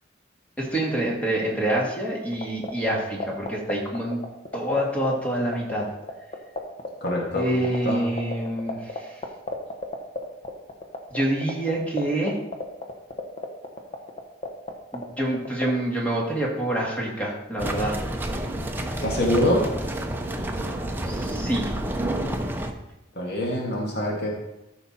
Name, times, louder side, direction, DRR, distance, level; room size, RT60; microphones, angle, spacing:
voice 1, 0.6-4.2 4.5-5.9 7.3-9.2 11.1-12.4 14.9-18.0 21.0-21.7, right 1 dB, 5° left, -3 dB, 2.2 m, -26 dB
sound 1, 2.3-15.7, left 3 dB, 35° left, 1.2 m, -30 dB
voice 2, 7.0-7.6 7.8-8.0 19.0-19.6 23.2-24.3, left 1 dB, 55° left, -2 dB, 2.0 m, -24 dB
horses walk to the gate on a sloppy track, 17.6-22.7, right 1 dB, 10° right, 0.7 m, -29 dB
13.5 x 5.9 x 4.3 m, 0.96 s
head